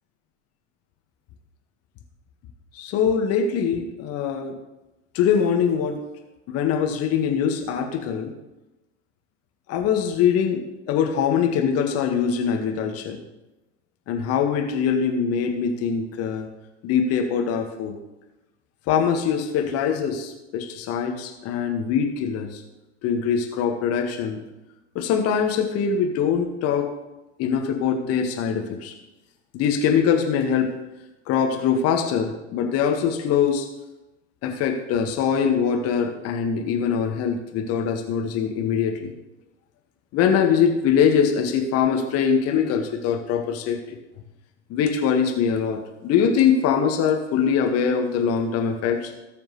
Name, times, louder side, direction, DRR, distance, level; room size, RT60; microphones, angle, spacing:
voice 1, 2.8-4.5 5.1-6.0 6.5-8.3 9.7-10.6 10.9-13.2 14.1-16.4 16.8-18.0 18.9-22.6 23.0-24.4 25.0-26.9 27.4-28.9 29.5-30.7 31.3-33.7 34.4-39.1 40.1-43.8 44.7-49.1, left 7 dB, 40° left, 4 dB, 2.0 m, -23 dB
19.5 x 7.2 x 3.4 m, 1.0 s
figure-of-eight pair, 80°, 36 cm